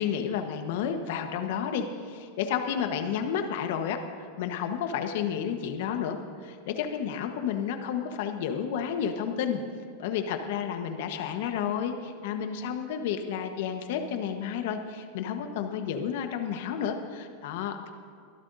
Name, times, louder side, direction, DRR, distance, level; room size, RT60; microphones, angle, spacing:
voice 1, 0.0-9.6 10.0-17.9, left 8 dB, 65° left, 6 dB, 1.2 m, -31 dB
24.5 x 12.5 x 2.7 m, 2.3 s
hypercardioid pair, 100°, 0 cm